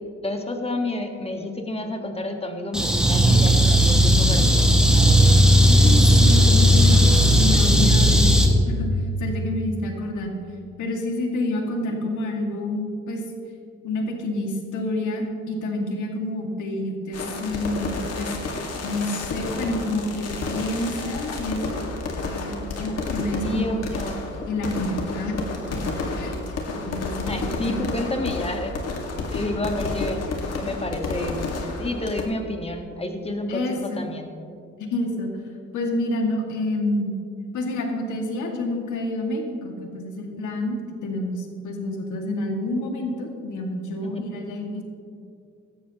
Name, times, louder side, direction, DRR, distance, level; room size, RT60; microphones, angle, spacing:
voice 1, 0.2-5.2 23.4-24.3 27.3-28.8 29.3-30.2 30.5-31.4 31.8-34.3 44.0-44.2, left 1 dB, 20° left, 4 dB, 1.6 m, -30 dB
sound 1, 2.7-8.5, equal, ahead, 1.9 m, -16 dB
voice 2, 5.6-8.9 9.2-10.4 10.8-13.2 13.8-18.3 18.8-21.8 22.2-23.7 23.9-24.0 24.5-25.4 25.7-25.8 26.1-26.4 26.7-27.9 33.5-34.0 34.8-35.3 35.7-37.1 37.5-44.8, left 1 dB, 75° left, 1 dB, 2.3 m, -28 dB
sound 2, 17.1-32.2, left 3 dB, 55° left, 2.0 m, -30 dB
17.5 x 13.0 x 3.0 m, 2.5 s
cardioid pair, 90°, 30 cm